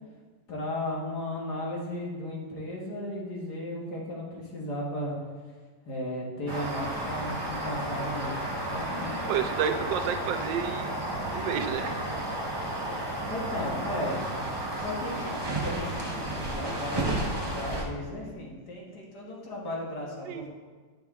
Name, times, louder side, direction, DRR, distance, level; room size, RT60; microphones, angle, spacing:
voice 1, 0.5-5.2 5.8-8.4 8.7-9.2 13.3-14.2 14.8-20.5, left 1 dB, 60° left, -3 dB, 2.0 m, -35 dB
sound 1, 6.5-17.8, right 1 dB, 25° right, 0.5 m, -32 dB
voice 2, 9.3-11.0 11.3-12.0 20.3-20.5, right 8 dB, 75° right, 6 dB, 1.2 m, -30 dB
9.7 x 6.3 x 3.6 m, 1.4 s
omnidirectional pair, 2.1 m